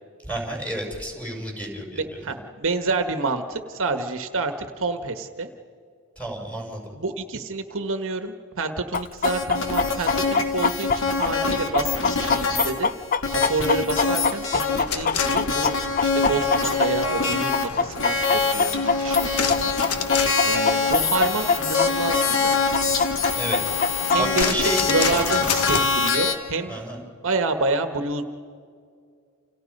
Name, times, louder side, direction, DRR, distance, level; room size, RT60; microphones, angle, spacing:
voice 1, 0.3-2.0 6.2-6.8 23.3-23.6 24.1-24.9 26.7-27.0, right 1 dB, 5° left, -1 dB, 6.0 m, -30 dB
voice 2, 2.0-5.5 6.9-12.9 13.3-19.7 20.4-22.6 24.1-26.8 27.2-28.2, right 3 dB, 60° right, 7 dB, 1.4 m, -28 dB
Chicken rooster, 8.9-17.2 17.5-21.9 22.1-22.2 22.7-24.4, left 5 dB, 40° left, 0.5 m, -23 dB
sound 1, 9.2-14.8 15.2-17.7 18.0-26.4, left 4 dB, 60° left, 2.8 m, -24 dB
sound 2, 14.9-26.0, left 6 dB, 80° left, 1.3 m, -32 dB
30.0 x 29.0 x 5.4 m, 2.2 s
head